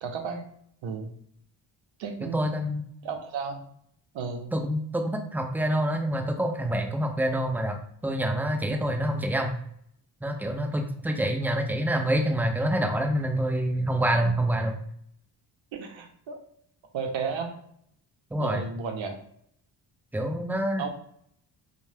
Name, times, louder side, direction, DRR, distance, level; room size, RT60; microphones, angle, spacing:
voice 1, 0.0-0.4 0.8-1.1 2.0-2.5 3.0-3.6 4.1-4.5 15.7-16.4 16.9-17.6 18.4-19.2 20.8-20.9, right 5 dB, 75° right, 5 dB, 0.7 m, -33 dB
voice 2, 2.3-2.8 4.5-9.5 10.2-14.8 18.3-18.6 20.1-20.9, right 1 dB, 5° right, 4 dB, 0.3 m, -27 dB
2.6 x 2.2 x 3.2 m, 0.68 s
cardioid pair, 80°, 46 cm